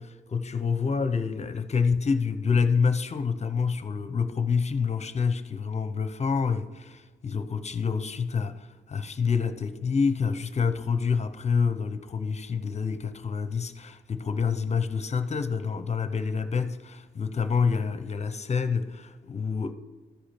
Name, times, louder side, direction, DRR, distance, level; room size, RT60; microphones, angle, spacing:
voice 1, 0.0-8.5 8.9-19.7, left 5 dB, 35° left, 0.7 m, -27 dB
13.5 x 5.0 x 4.3 m
cardioid pair, 95°, 19 cm